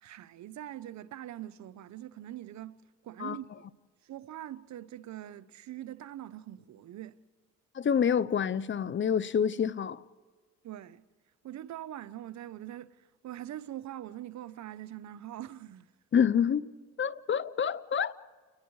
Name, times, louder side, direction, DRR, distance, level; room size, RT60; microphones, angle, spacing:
voice 1, 0.0-3.7 4.1-7.2 10.6-11.0 11.4-12.9 13.2-15.9, right 12 dB, 65° right, 0.9 m, -43 dB
voice 2, 7.8-10.0 16.1-16.7 17.0-18.1, left 7 dB, 40° left, 0.8 m, -27 dB
29.5 x 20.0 x 4.8 m
cardioid pair, 90°, 30 cm